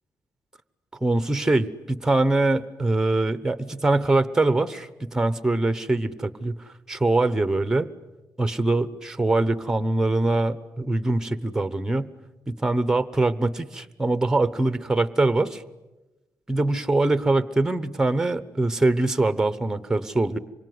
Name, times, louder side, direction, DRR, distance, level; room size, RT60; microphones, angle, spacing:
voice 1, 1.0-6.5 6.9-7.9 8.4-12.1 12.5-15.6 16.5-20.4, right 2 dB, 10° right, 14 dB, 1.0 m, -23 dB
26.5 x 23.5 x 9.6 m, 1.1 s
wide cardioid pair, 170°, 7 cm